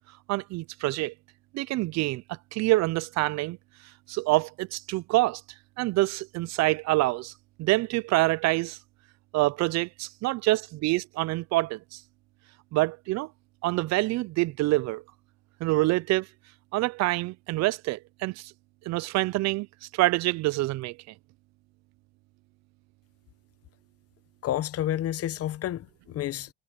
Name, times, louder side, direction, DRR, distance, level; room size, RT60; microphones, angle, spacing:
voice 1, 0.3-1.1 1.5-3.6 4.1-5.4 5.8-7.3 7.6-8.8 9.3-12.0 12.7-13.3 13.6-15.0 15.6-16.3 16.7-18.5 18.9-19.7 19.9-21.0, right 19 dB, 50° right, 0.6 m, -26 dB
voice 2, 24.4-26.5, left 12 dB, 45° left, 1.1 m, -30 dB
supercardioid pair, 100°, 34 cm